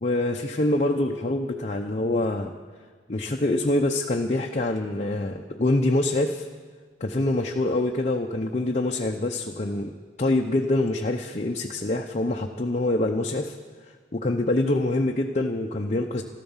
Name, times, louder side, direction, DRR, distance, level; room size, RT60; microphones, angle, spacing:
voice 1, 0.0-2.5 3.1-6.5 7.0-13.6 14.1-16.2, left 2 dB, 40° left, 1 dB, 0.7 m, -25 dB
13.5 x 12.5 x 7.2 m, 1.5 s
head